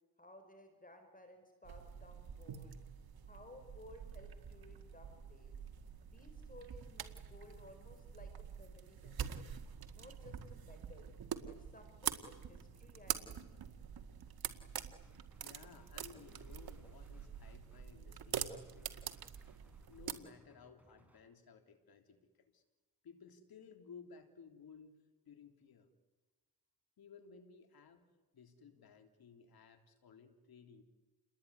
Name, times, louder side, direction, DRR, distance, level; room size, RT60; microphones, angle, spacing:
voice 1, 0.2-2.8 3.3-5.6 6.0-9.4 9.9-11.1 11.4-13.7, left 1 dB, 20° left, 6 dB, 4.7 m, -58 dB
sound 1, 1.6-20.1, right 8 dB, 75° right, 2.0 m, -46 dB
sound 2, 15.0-15.5 15.8-21.2, right 1 dB, 5° right, 6.6 m, -68 dB
voice 2, 15.4-19.1 19.9-22.6 23.0-25.0 25.2-25.9 27.0-30.8, left 6 dB, 75° left, 7 dB, 3.4 m, -58 dB
29.5 x 21.0 x 9.6 m, 1.2 s
cardioid pair, 85°, 37 cm